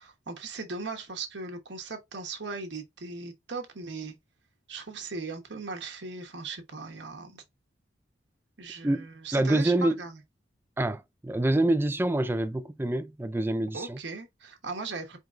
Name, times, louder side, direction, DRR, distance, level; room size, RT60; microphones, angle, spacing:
voice 1, 0.0-4.2 4.7-7.4 8.6-10.2 13.7-15.2, right 3 dB, 70° right, 1.1 m, -38 dB
voice 2, 8.8-10.0 10.8-14.0, right 1 dB, 10° right, 0.3 m, -26 dB
4.5 x 3.6 x 2.5 m
head